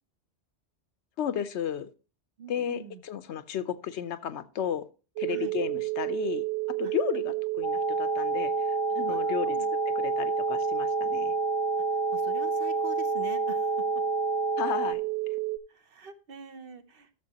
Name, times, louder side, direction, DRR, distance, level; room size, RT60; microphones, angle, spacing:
voice 1, 1.2-1.9 2.5-4.9 5.2-6.4 6.8-9.6 10.0-11.3 14.6-15.0, left 9 dB, 90° left, 12 dB, 1.0 m, -33 dB
voice 2, 2.4-3.0 5.3-5.5 6.8-6.9 9.1-9.7 12.1-13.8 15.7-17.2, right 6 dB, 60° right, 10 dB, 1.0 m, -44 dB
sound 1, 5.2-15.6, right 22 dB, 75° right, 0.8 m, -31 dB
sound 2, 7.6-14.9, left 2 dB, 45° left, 0.5 m, -31 dB
13.0 x 6.9 x 2.8 m, 0.34 s
omnidirectional pair, 1.1 m